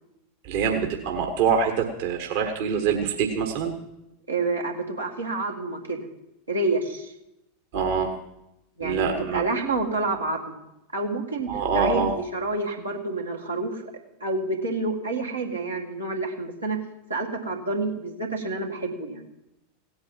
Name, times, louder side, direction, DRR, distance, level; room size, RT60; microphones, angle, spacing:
voice 1, 0.4-3.7 7.7-8.1 8.8-9.4 11.5-12.1, right 6 dB, 55° right, 3 dB, 1.4 m, -25 dB
voice 2, 4.3-6.0 6.5-7.1 8.8-10.6 10.9-11.5 11.7-13.9 14.2-16.8 17.1-19.3, right 2 dB, 85° right, -1 dB, 2.1 m, -28 dB
17.0 x 8.7 x 5.7 m, 0.87 s
figure-of-eight pair, 85°, 0 cm